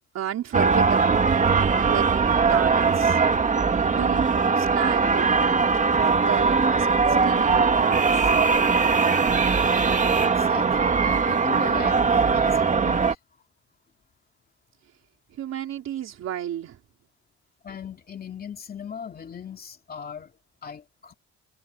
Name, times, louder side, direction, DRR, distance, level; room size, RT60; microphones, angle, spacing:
voice 1, 0.1-1.2 1.5-2.1 2.5-3.2 3.8-5.3 5.7-8.3 15.3-16.8, right 11 dB, 60° right, 4.1 m, -33 dB
sound 1, 0.5-13.1, right 5 dB, 25° right, 1.6 m, -20 dB
voice 2, 10.2-13.1 17.6-20.3 20.6-21.1, left 7 dB, 30° left, 2.5 m, -38 dB
cardioid pair, 140°, 30 cm